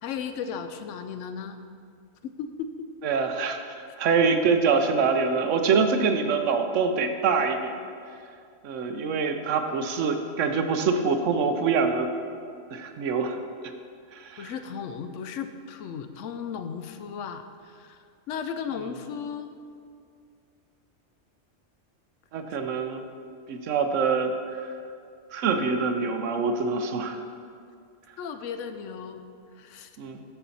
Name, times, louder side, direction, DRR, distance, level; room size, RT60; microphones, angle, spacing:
voice 1, 0.0-1.6 2.2-2.7 14.4-18.0 18.3-19.5 28.2-29.2 29.5-29.9, left 7 dB, 85° left, 8 dB, 0.9 m, -35 dB
voice 2, 3.0-7.7 8.6-12.1 12.7-13.4 14.1-14.5 22.3-23.0 23.5-24.6 25.3-27.2 30.0-30.2, right 5 dB, 90° right, 6 dB, 1.0 m, -25 dB
12.5 x 4.4 x 4.1 m, 2.3 s
omnidirectional pair, 1.2 m